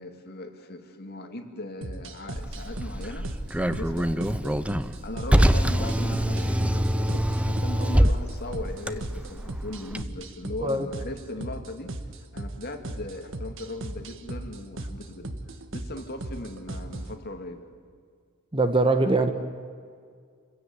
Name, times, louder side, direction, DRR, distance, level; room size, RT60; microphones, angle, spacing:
voice 1, 0.0-3.3 3.6-4.7 5.0-11.9 12.3-15.4 15.7-17.7, left 2 dB, 45° left, 5 dB, 2.4 m, -38 dB
sound 1, 1.8-17.2, right 1 dB, 60° right, 1.4 m, -38 dB
Car, 2.3-10.0, equal, 5° right, 0.7 m, -25 dB
voice 2, 18.5-19.3, right 2 dB, 25° right, 8 dB, 1.3 m, -22 dB
28.0 x 16.0 x 9.5 m, 2.1 s
head